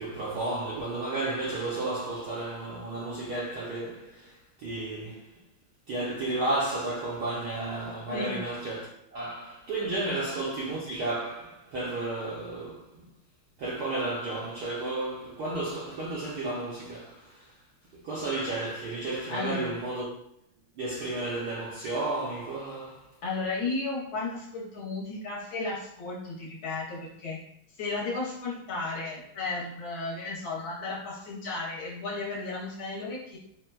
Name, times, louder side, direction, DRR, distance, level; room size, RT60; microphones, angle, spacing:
voice 1, 0.0-5.4 5.9-13.0 13.6-17.5 17.9-20.1 20.7-23.1, right 2 dB, 70° right, 0.9 m, -33 dB
voice 2, 19.3-19.7 23.2-27.4 27.8-33.4, left 3 dB, 70° left, 1.5 m, -34 dB
4.0 x 2.1 x 2.2 m
omnidirectional pair, 2.4 m